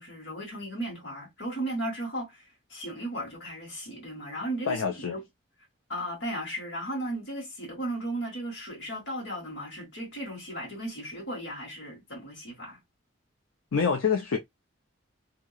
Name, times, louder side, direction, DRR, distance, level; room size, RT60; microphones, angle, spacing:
voice 1, 0.0-2.4 2.7-5.2 5.9-12.8, right 1 dB, 60° left, 1.6 m, -35 dB
voice 2, 4.7-5.2 13.7-14.4, left 6 dB, 80° left, 0.5 m, -26 dB
2.9 x 2.8 x 2.3 m
head